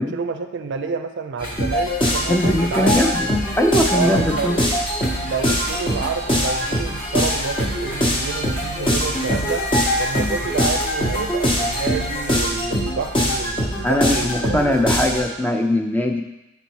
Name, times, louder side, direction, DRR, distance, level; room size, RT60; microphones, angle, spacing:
voice 1, 0.0-3.0 3.9-4.6 5.2-9.7 10.0-14.8, right 5 dB, 60° right, 8 dB, 0.4 m, -28 dB
sound 1, 1.4-12.4, left 1 dB, 45° left, 1.3 m, -33 dB
sound 2, 1.6-15.3, equal, 25° left, 0.8 m, -22 dB
voice 2, 2.3-3.3 3.6-4.6 13.8-16.2, left 1 dB, 10° left, 4 dB, 0.4 m, -20 dB
5.3 x 4.1 x 4.6 m, 0.93 s
head